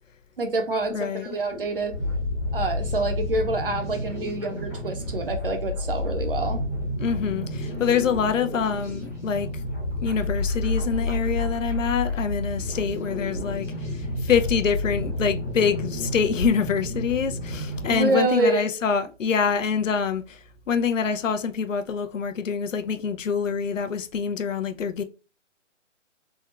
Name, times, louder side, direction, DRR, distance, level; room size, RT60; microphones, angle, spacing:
voice 1, 0.4-1.9 2.5-6.6 17.9-18.7, right 2 dB, 45° right, 0.7 m, -26 dB
voice 2, 0.9-1.3 7.0-9.5 10.0-13.7 14.2-20.4 20.7-25.0, left 6 dB, 80° left, 0.6 m, -25 dB
sound 1, 1.5-18.0, left 1 dB, 10° left, 0.7 m, -30 dB
3.5 x 2.2 x 3.0 m
hypercardioid pair, 170°, 38 cm